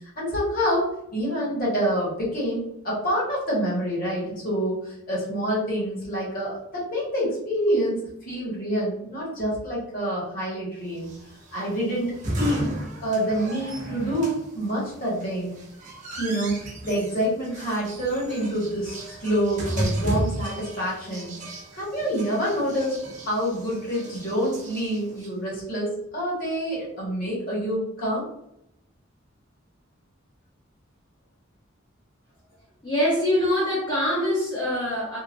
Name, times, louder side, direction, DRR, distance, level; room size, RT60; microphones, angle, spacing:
voice 1, 0.1-8.0 8.2-11.1 11.5-12.7 13.0-15.5 16.2-21.4 21.7-28.3, equal, 50° left, -6 dB, 1.4 m, -27 dB
sound 1, 11.0-25.3, right 1 dB, 40° right, 0.7 m, -34 dB
voice 2, 32.8-35.2, left 1 dB, 25° left, -7 dB, 0.7 m, -24 dB
2.9 x 2.4 x 2.5 m, 0.79 s
head